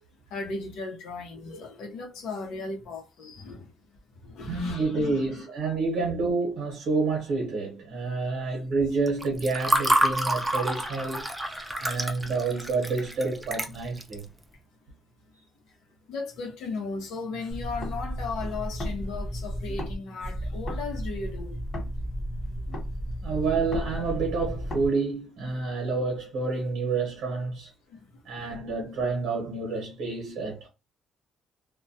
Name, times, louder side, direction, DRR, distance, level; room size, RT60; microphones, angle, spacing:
voice 1, 0.3-3.7 4.2-5.4 16.1-21.9 22.7-22.8 27.9-28.0, left 4 dB, 90° left, 0.7 m, -36 dB
voice 2, 4.5-11.3 11.8-14.3 23.2-27.7 28.2-30.7, right 3 dB, 65° right, 0.8 m, -28 dB
Water / Fill (with liquid), 9.1-14.2, right 1 dB, 10° right, 0.4 m, -28 dB
sound 1, 17.5-19.9 20.2-24.9, equal, 30° left, 1.0 m, -33 dB
2.2 x 2.2 x 2.6 m
cardioid pair, 130°, 0 cm